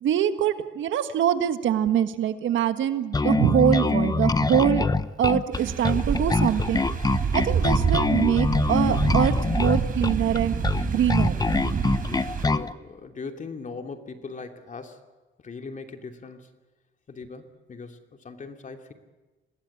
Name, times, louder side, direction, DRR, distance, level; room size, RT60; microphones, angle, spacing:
voice 1, 0.0-4.9 5.2-6.8 7.3-10.5 10.9-11.3, right 10 dB, 75° right, 10 dB, 1.5 m, -24 dB
Bass guitar, 3.1-12.7, left 3 dB, 20° left, 0.9 m, -24 dB
sound 1, 5.5-12.5, right 5 dB, 45° right, 4.5 m, -27 dB
voice 2, 12.0-15.0 15.4-16.5 17.1-18.9, left 4 dB, 40° left, 5 dB, 2.9 m, -40 dB
26.5 x 19.0 x 8.6 m, 1.2 s
cardioid pair, 90°, 20 cm